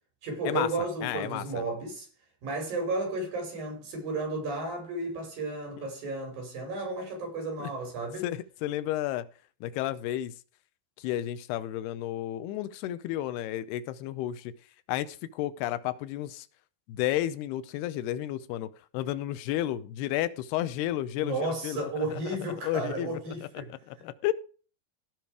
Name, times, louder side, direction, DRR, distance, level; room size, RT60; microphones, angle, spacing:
voice 1, 0.2-2.1 2.4-8.3 21.2-23.7, right 2 dB, 60° right, 6.8 m, -33 dB
voice 2, 1.0-1.6 5.8-5.9 7.6-7.7 8.2-9.3 9.6-10.3 11.0-14.5 14.9-16.5 16.9-21.4 21.6-22.1 22.6-24.3, left 13 dB, 85° left, 2.7 m, -32 dB
16.5 x 6.0 x 4.9 m
omnidirectional pair, 4.6 m